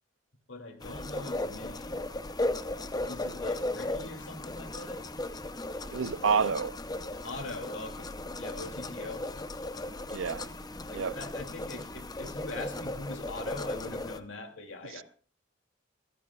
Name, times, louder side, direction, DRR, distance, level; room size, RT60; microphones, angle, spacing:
voice 1, 0.5-2.1 3.0-5.2 7.2-8.1 8.4-9.2 10.9-15.0, left 2 dB, 75° left, 2.7 m, -42 dB
sound 1, 0.8-14.2, left 2 dB, 20° left, 0.7 m, -36 dB
voice 2, 5.9-6.8 10.1-10.5 10.9-11.1 15.0-15.1, right 6 dB, 80° right, 0.6 m, -28 dB
23.0 x 15.5 x 2.4 m
head